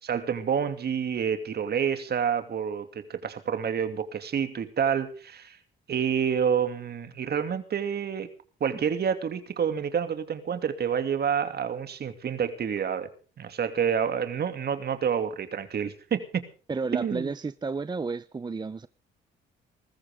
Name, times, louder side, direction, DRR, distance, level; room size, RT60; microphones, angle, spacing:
voice 1, 0.0-5.6 5.9-8.3 8.6-13.1 13.4-16.4 16.9-17.3, right 7 dB, 55° right, 2.7 m, -28 dB
voice 2, 16.7-18.9, right 4 dB, 20° right, 0.6 m, -32 dB
20.0 x 14.5 x 3.7 m
cardioid pair, 90°, 20 cm